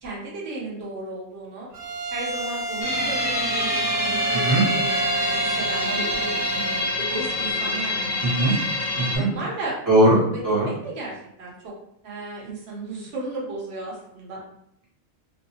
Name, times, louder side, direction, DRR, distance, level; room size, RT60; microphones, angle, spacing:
voice 1, 0.0-1.7 2.1-6.3 6.9-8.3 9.1-9.7 10.8-11.7 12.0-14.4, right 2 dB, 60° right, -4 dB, 1.1 m, -34 dB
Bowed string instrument, 1.7-7.0, right 3 dB, 85° right, 1.0 m, -28 dB
sound 1, 2.8-9.2, left 2 dB, 45° left, 0.6 m, -27 dB
voice 2, 4.3-4.6 8.2-8.5 9.0-9.3 9.9-10.7, right 1 dB, 15° right, -7 dB, 1.0 m, -20 dB
2.7 x 2.2 x 2.7 m, 0.76 s
omnidirectional pair, 1.3 m